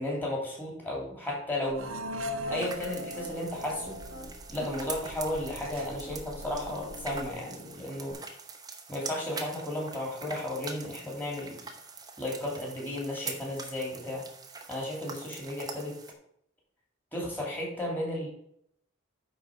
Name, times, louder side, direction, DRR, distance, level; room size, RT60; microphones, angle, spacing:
voice 1, 0.0-1.9 2.5-4.0 4.5-8.1 8.9-11.6 12.2-14.2 14.7-15.9 17.1-18.3, left 1 dB, 10° left, -3 dB, 2.8 m, -34 dB
sound 1, 1.6-7.3, equal, 80° right, 0.8 m, -40 dB
Piano, 1.7-2.6 3.1-4.4 4.7-8.1, left 1 dB, 65° left, 3.2 m, -47 dB
sound 2, 2.6-16.1, right 4 dB, 20° right, 0.8 m, -44 dB
9.7 x 4.1 x 6.4 m, 0.70 s
head